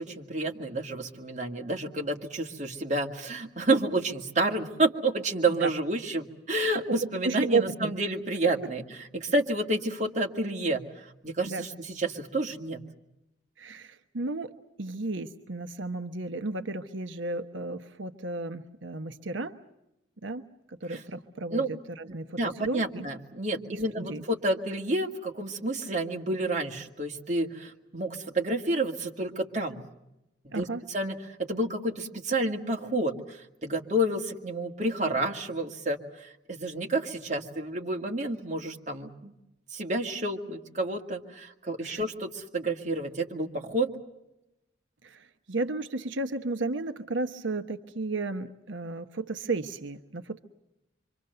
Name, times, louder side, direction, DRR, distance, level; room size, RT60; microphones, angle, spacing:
voice 1, 0.0-8.8 9.1-10.9 11.2-11.7 12.0-12.8 20.9-21.0 21.5-21.7 22.1-29.8 30.4-39.3 39.7-44.0, right 2 dB, 40° right, 1 dB, 2.2 m, -30 dB
voice 2, 7.2-7.9 11.4-11.7 13.6-14.5 14.8-19.5 20.2-20.4 20.7-23.1 23.7-24.2 30.5-30.8 41.8-42.0 45.0-50.4, right 3 dB, 90° right, 8 dB, 1.1 m, -33 dB
26.5 x 25.0 x 6.8 m, 0.89 s
head